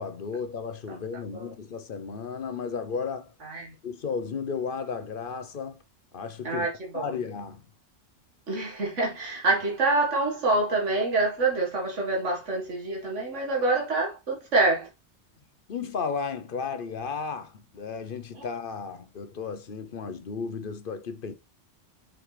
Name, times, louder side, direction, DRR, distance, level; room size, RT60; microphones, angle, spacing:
voice 1, 0.0-3.3 3.8-5.8 6.1-6.7 6.9-7.6 15.7-21.3, left 5 dB, 50° left, 0.9 m, -34 dB
voice 2, 3.4-3.7 6.4-7.1 8.5-14.9, right 2 dB, 80° right, 2.1 m, -26 dB
5.8 x 5.7 x 3.3 m
omnidirectional pair, 1.2 m